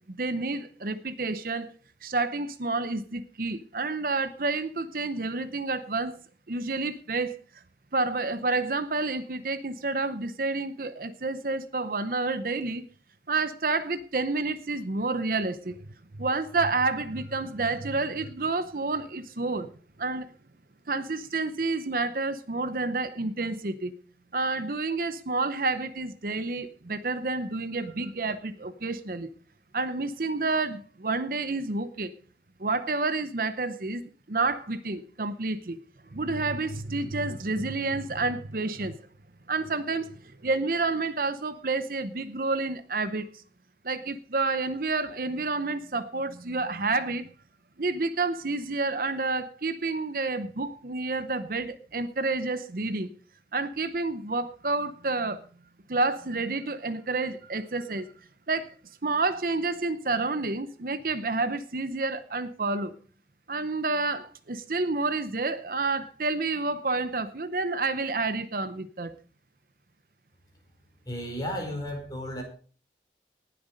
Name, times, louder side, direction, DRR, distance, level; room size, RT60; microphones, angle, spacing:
voice 1, 0.1-1.7 2.0-6.1 6.5-7.4 7.9-12.8 13.3-15.8 16.2-19.7 20.0-20.3 20.9-23.9 24.3-29.3 29.7-32.1 32.6-34.0 34.3-35.8 36.1-39.0 39.5-43.3 43.8-47.3 47.8-53.1 53.5-55.4 55.9-58.1 58.5-58.8 59.0-62.9 63.5-69.1, right 3 dB, 55° right, 12 dB, 0.8 m, -29 dB
voice 2, 71.0-72.4, equal, 20° left, 2 dB, 4.9 m, -33 dB
19.0 x 7.9 x 5.2 m, 0.42 s
head